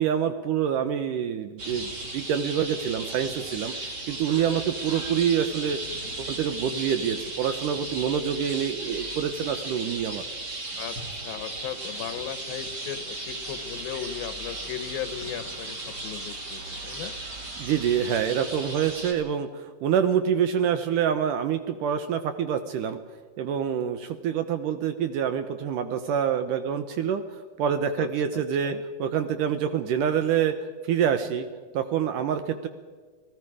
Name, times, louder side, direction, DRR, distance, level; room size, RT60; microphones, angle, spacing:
voice 1, 0.0-3.7 4.1-5.8 6.2-10.2 17.6-23.0 23.4-30.6 30.8-31.5 31.7-32.7, right 8 dB, 70° right, 9 dB, 2.1 m, -26 dB
sound 1, 1.6-19.1, right 2 dB, 30° right, 2.6 m, -36 dB
voice 2, 10.8-17.1 28.0-28.8, left 10 dB, 75° left, 11 dB, 2.6 m, -37 dB
30.0 x 18.0 x 4.9 m, 1.5 s
omnidirectional pair, 4.4 m